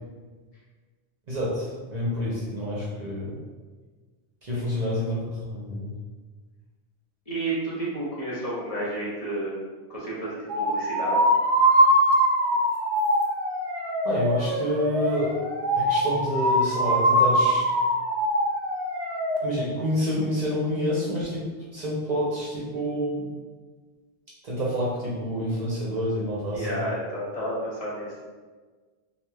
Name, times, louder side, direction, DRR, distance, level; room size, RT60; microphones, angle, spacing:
voice 1, 1.3-3.4 4.4-5.9 14.0-15.3 15.8-17.7 19.4-21.4 21.7-23.3 24.4-26.8, equal, 50° right, -7 dB, 0.7 m, -28 dB
voice 2, 4.5-4.9 7.3-9.5 9.9-11.2 26.5-28.2, right 1 dB, 40° left, -8 dB, 0.7 m, -31 dB
sound 1, 10.5-19.4, equal, 90° right, 0.9 m, -23 dB
3.1 x 2.4 x 2.3 m, 1.4 s
omnidirectional pair, 1.1 m